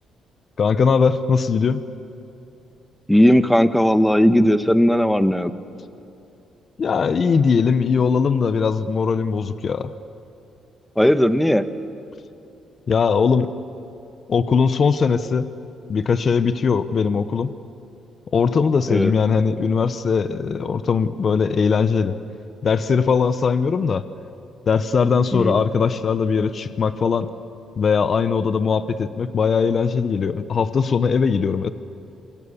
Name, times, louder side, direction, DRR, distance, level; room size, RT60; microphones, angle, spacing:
voice 1, 0.6-1.8 6.8-9.9 12.9-13.5 14.3-15.5 15.9-17.5 18.3-22.2 22.6-24.0 24.7-27.3 27.8-31.7, left 5 dB, 50° left, 12 dB, 1.0 m, -20 dB
voice 2, 3.1-5.5 11.0-11.7 18.9-19.1 25.3-25.6, equal, 5° left, 10 dB, 1.2 m, -17 dB
28.0 x 23.5 x 7.2 m, 2.8 s
cardioid pair, 90°, 0 cm